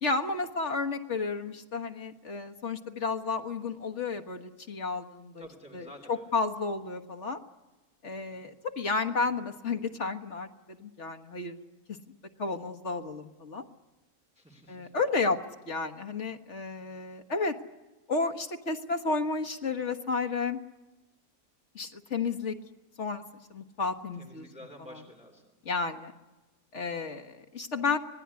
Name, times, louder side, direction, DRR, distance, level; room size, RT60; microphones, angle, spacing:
voice 1, 0.0-5.5 5.7-7.4 8.0-11.6 11.9-12.0 12.4-13.7 14.7-15.4 15.7-17.6 18.1-20.6 21.8-22.6 23.0-23.2 23.5-24.5 24.9-25.0 25.7-26.1 26.7-28.0, left 4 dB, 50° left, 6 dB, 1.7 m, -32 dB
voice 2, 5.4-6.3 8.2-8.6 14.3-14.9 24.2-25.5, equal, 5° right, 2 dB, 3.0 m, -50 dB
25.0 x 19.5 x 9.7 m, 1.1 s
omnidirectional pair, 1.6 m